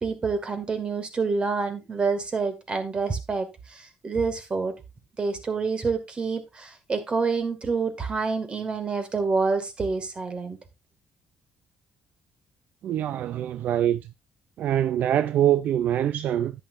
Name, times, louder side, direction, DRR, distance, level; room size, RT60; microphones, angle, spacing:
voice 1, 0.0-4.7 5.2-10.6, right 4 dB, 35° right, 2.1 m, -27 dB
voice 2, 12.8-14.1 14.6-16.5, right 11 dB, 70° right, 0.5 m, -24 dB
10.5 x 9.0 x 2.6 m
cardioid pair, 95°, 3 cm